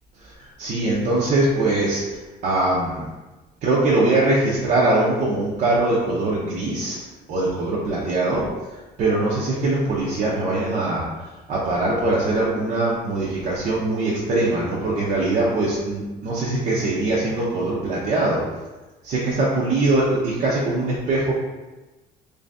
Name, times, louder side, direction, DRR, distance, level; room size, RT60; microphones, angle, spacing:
voice 1, 0.4-2.0 2.4-3.0 3.6-8.5 9.0-11.0 11.5-18.4 19.0-21.3, right 2 dB, 50° right, -6 dB, 0.7 m, -22 dB
3.1 x 2.6 x 3.4 m, 1.2 s
cardioid pair, 135°, 16 cm